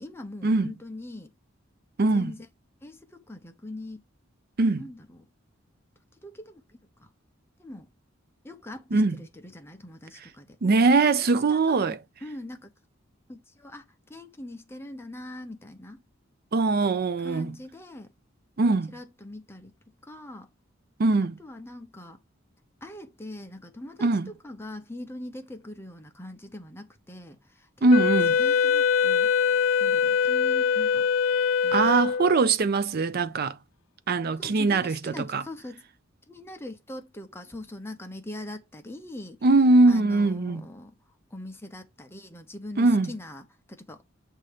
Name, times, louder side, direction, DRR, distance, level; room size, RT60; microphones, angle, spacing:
voice 1, 0.0-1.3 2.1-2.5 2.8-4.0 4.8-5.3 6.2-6.6 7.0-7.1 7.6-7.9 8.4-10.5 10.9-12.7 13.3-13.8 14.1-16.0 17.2-18.1 18.6-19.7 20.0-20.5 21.4-22.2 22.8-28.1 28.4-29.3 29.8-31.1 31.6-32.0 34.4-35.8 36.3-39.4 39.9-40.9 41.3-44.1, left 1 dB, 10° left, 0.8 m, -42 dB
voice 2, 2.0-2.3 4.6-4.9 8.9-9.2 10.6-12.0 16.5-17.6 18.6-18.9 21.0-21.4 24.0-24.3 27.8-28.4 31.7-33.6 34.1-35.4 39.4-40.6 42.8-43.1, right 3 dB, 50° right, 0.5 m, -22 dB
Wind instrument woodwind instrument, 27.9-32.5, left 6 dB, 75° left, 0.4 m, -23 dB
7.9 x 2.8 x 4.9 m
head